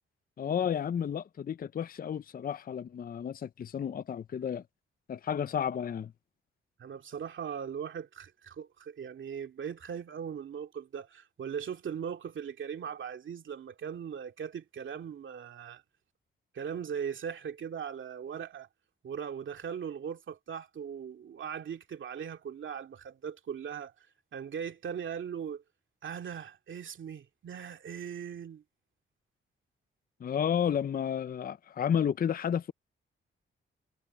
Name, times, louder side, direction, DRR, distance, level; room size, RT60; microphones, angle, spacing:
voice 1, 0.4-4.6 5.1-6.1 30.2-32.7, left 8 dB, 45° left, 0.5 m, -31 dB
voice 2, 6.8-15.8 16.5-18.7 19.0-23.9 24.3-25.6 26.0-28.6, right 7 dB, 65° right, 2.4 m, -39 dB
cardioid pair, 70°, 21 cm